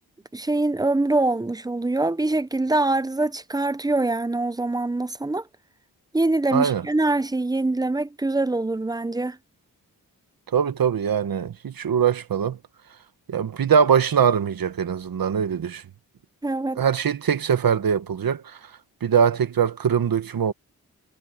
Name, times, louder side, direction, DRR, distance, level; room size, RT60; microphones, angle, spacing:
voice 1, 0.3-5.4 6.1-9.4 16.4-16.8, right 2 dB, 10° right, 0.6 m, -24 dB
voice 2, 6.5-6.8 10.5-12.6 13.3-15.8 16.8-18.6 19.0-20.5, right 7 dB, 70° right, 1.3 m, -22 dB
cardioid pair, 65°, 36 cm